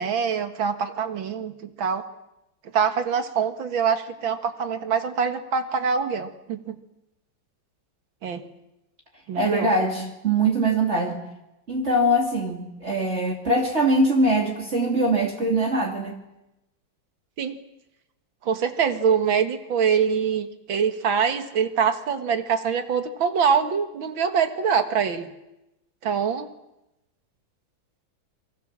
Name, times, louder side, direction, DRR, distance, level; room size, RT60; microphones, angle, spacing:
voice 1, 0.0-2.0 2.7-6.8 8.2-8.5 9.3-9.7 17.4-17.6 18.4-25.3 26.0-26.5, right 6 dB, 85° right, 8 dB, 2.5 m, -24 dB
voice 2, 9.4-11.2 11.7-16.2, right 1 dB, 35° right, 1 dB, 2.9 m, -22 dB
28.5 x 24.0 x 7.4 m, 0.93 s
omnidirectional pair, 2.1 m